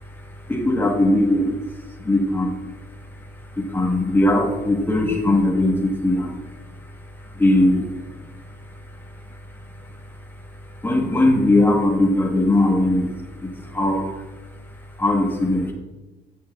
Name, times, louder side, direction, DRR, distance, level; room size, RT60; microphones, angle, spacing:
voice 1, 0.5-1.6 2.0-2.5 3.5-6.4 7.3-7.9 10.8-13.1 13.4-14.2 15.0-15.7, left 1 dB, 10° left, 0 dB, 1.4 m, -19 dB
8.9 x 7.1 x 2.4 m, 1.1 s
cardioid pair, 110°, 17 cm